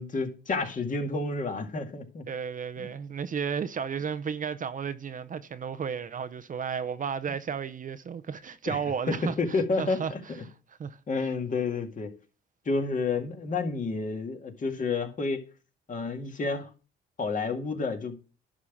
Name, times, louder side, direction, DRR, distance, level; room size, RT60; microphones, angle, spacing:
voice 1, 0.0-2.3 2.8-2.9 8.7-8.8 9.1-10.5 11.1-12.1 12.7-15.4 15.9-16.7 17.2-18.2, left 3 dB, 40° left, 2.0 m, -30 dB
voice 2, 2.3-10.1 10.7-11.0, right 7 dB, 40° right, 0.7 m, -33 dB
11.0 x 3.8 x 7.1 m
cardioid pair, 90°, 20 cm